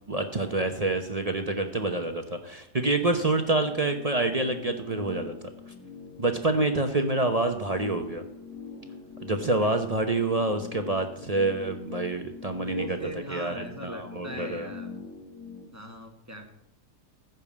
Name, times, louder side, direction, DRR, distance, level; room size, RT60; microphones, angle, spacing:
voice 1, 0.1-5.4 6.2-8.2 9.2-14.7, right 2 dB, 35° right, 6 dB, 0.6 m, -27 dB
sound 1, 3.2-15.6, left 5 dB, 40° left, 3.1 m, -44 dB
voice 2, 12.5-15.0 15.7-16.5, right 2 dB, 10° right, 3 dB, 1.5 m, -40 dB
14.5 x 5.3 x 8.4 m, 0.77 s
omnidirectional pair, 1.7 m